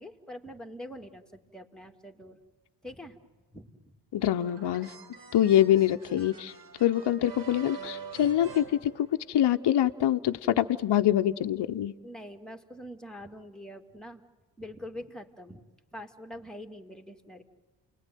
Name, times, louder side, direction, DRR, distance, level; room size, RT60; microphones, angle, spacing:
voice 1, 0.0-2.4 2.8-3.2 3.5-4.0 12.0-14.2 14.6-15.7 15.9-17.4, equal, ahead, 3 dB, 2.5 m, -44 dB
voice 2, 4.1-4.9 5.3-6.5 6.8-11.9, left 11 dB, 55° left, 9 dB, 1.0 m, -25 dB
sound 1, 4.2-9.6, right 6 dB, 55° right, 4.6 m, -46 dB
29.0 x 20.5 x 9.3 m, 1.2 s
supercardioid pair, 60°, 49 cm